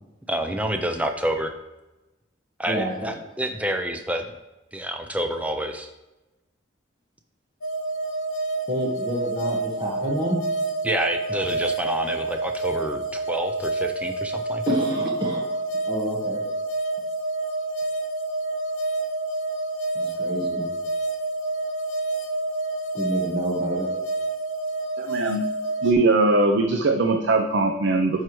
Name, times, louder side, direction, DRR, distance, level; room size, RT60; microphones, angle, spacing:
voice 1, 0.3-1.5 2.6-4.2 4.7-5.9 10.8-14.6, right 1 dB, 5° right, 5 dB, 0.5 m, -28 dB
voice 2, 2.7-3.1 8.7-10.4 14.7-15.6 15.8-16.4 19.9-20.7 22.9-23.9, equal, 25° right, -2 dB, 1.3 m, -28 dB
sound 1, 7.6-25.9, right 2 dB, 85° left, 0.6 m, -28 dB
voice 3, 25.0-25.4 25.8-28.2, right 2 dB, 65° right, 4 dB, 0.5 m, -21 dB
10.5 x 4.7 x 3.1 m, 1.0 s
head